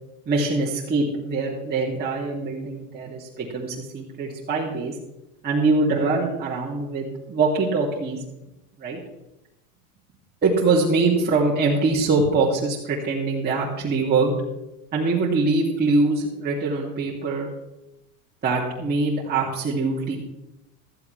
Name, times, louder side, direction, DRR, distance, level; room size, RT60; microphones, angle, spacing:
voice 1, 0.3-4.9 5.4-8.2 8.8-9.0 10.4-14.3 14.9-17.5 18.4-20.2, right 3 dB, 20° right, -6 dB, 2.8 m, -23 dB
15.5 x 14.0 x 3.4 m, 0.92 s
supercardioid pair, 130°, 44 cm